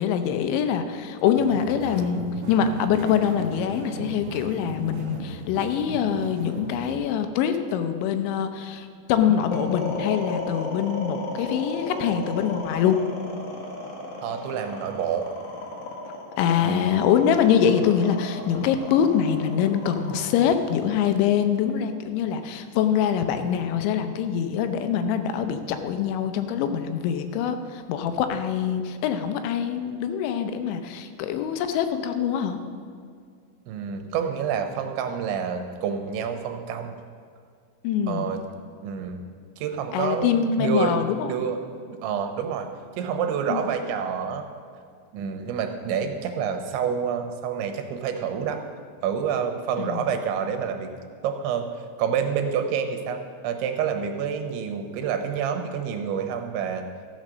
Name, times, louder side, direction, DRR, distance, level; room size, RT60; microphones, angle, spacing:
voice 1, 0.0-2.2 2.5-13.0 16.4-32.6 37.8-38.3 39.9-41.3 43.5-43.6 49.8-50.1, left 8 dB, 85° left, 8 dB, 3.1 m, -24 dB
sound 1, 1.3-7.0, right 3 dB, 60° right, 2.2 m, -36 dB
sound 2, 9.5-21.8, left 2 dB, 55° left, 2.5 m, -35 dB
voice 2, 14.2-15.3 16.6-16.9 33.7-36.9 38.1-38.4 38.8-39.2 39.6-41.0 41.2-41.6 41.9-42.7 43.0-44.5 45.1-48.6 49.0-50.9 51.2-51.7 52.0-53.2 53.4-56.9, right 7 dB, 85° right, 6 dB, 3.1 m, -28 dB
13.5 x 6.5 x 6.2 m, 2.2 s
omnidirectional pair, 5.3 m